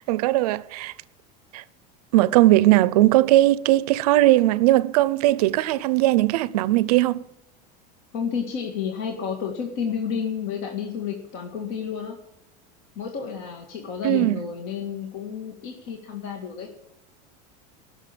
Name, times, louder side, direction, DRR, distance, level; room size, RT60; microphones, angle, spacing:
voice 1, 0.1-0.9 1.5-1.6 2.1-7.2 14.0-14.4, right 16 dB, 65° right, 0.7 m, -19 dB
voice 2, 8.1-12.2 13.0-16.7, left 7 dB, 50° left, 2.0 m, -31 dB
17.0 x 6.6 x 8.6 m
supercardioid pair, 180°, 21 cm